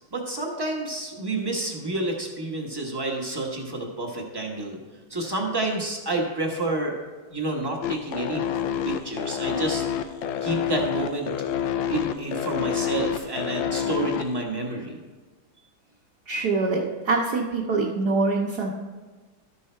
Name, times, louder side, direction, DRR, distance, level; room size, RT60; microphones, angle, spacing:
voice 1, 0.1-4.8 5.1-7.0 7.3-8.4 8.8-9.8 10.4-11.3 11.9-15.0, right 2 dB, 20° right, 0 dB, 0.7 m, -29 dB
sound 1, 7.8-14.4, left 9 dB, 80° left, 1.3 m, -27 dB
voice 2, 16.3-18.7, right 3 dB, 60° right, -3 dB, 1.2 m, -24 dB
12.5 x 5.5 x 4.3 m, 1.3 s
omnidirectional pair, 2.2 m